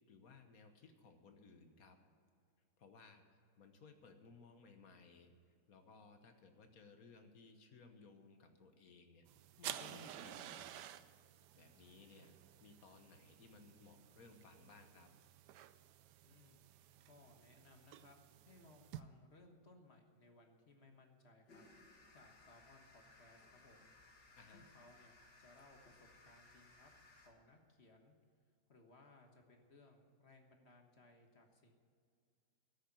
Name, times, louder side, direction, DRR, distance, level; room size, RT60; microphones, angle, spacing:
voice 1, 0.1-2.0 2.8-9.2 9.6-10.7 11.6-15.1 24.3-24.6, left 4 dB, 55° left, 6 dB, 1.4 m, -61 dB
sound 1, 9.3-19.0, right 12 dB, 75° right, 1.2 m, -53 dB
voice 2, 16.2-16.6 17.0-21.6 22.1-23.9 24.5-25.1 25.4-26.9 27.2-28.1 28.7-31.7, left 2 dB, 40° left, 3 dB, 1.5 m, -64 dB
sound 2, 21.5-27.3, left 2 dB, 75° left, 2.5 m, -64 dB
13.0 x 6.6 x 9.8 m, 2.3 s
omnidirectional pair, 1.9 m